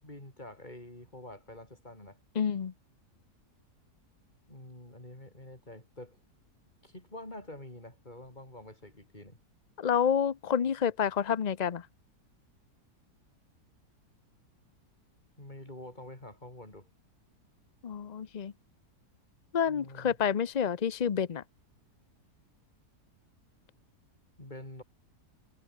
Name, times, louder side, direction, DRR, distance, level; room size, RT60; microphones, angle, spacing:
voice 1, 0.0-2.2 4.5-6.2 6.8-9.4 15.4-16.9 19.6-20.2 24.4-24.8, left 1 dB, 25° left, 5.6 m, -47 dB
voice 2, 2.3-2.7 9.8-11.9 17.8-18.5 19.5-21.4, left 7 dB, 60° left, 0.4 m, -29 dB
omnidirectional pair, 1.8 m